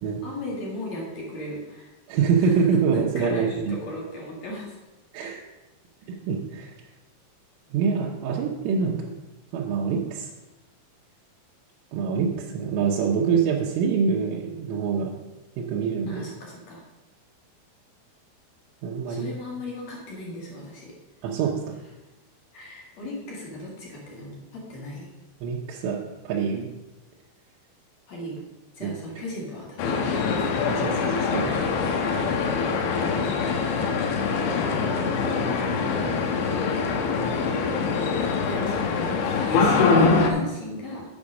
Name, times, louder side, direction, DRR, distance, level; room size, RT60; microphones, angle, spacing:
voice 1, 0.2-1.9 2.4-2.5 2.9-4.8 16.1-16.8 19.1-20.9 22.5-25.1 28.1-28.3 28.8-30.7 38.2-41.0, left 1 dB, 50° left, -4 dB, 2.2 m, -37 dB
voice 2, 2.1-3.8 5.1-5.4 6.1-6.7 7.7-9.1 9.5-10.3 11.9-15.1 15.6-16.3 18.8-19.3 21.2-21.6 25.4-26.0 26.2-26.7 28.8-29.0 30.7-31.5, right 6 dB, 80° right, -3 dB, 3.2 m, -25 dB
sound 1, 29.8-40.3, left 4 dB, 75° left, 3.0 m, -24 dB
8.4 x 5.6 x 6.3 m, 1.0 s
omnidirectional pair, 5.7 m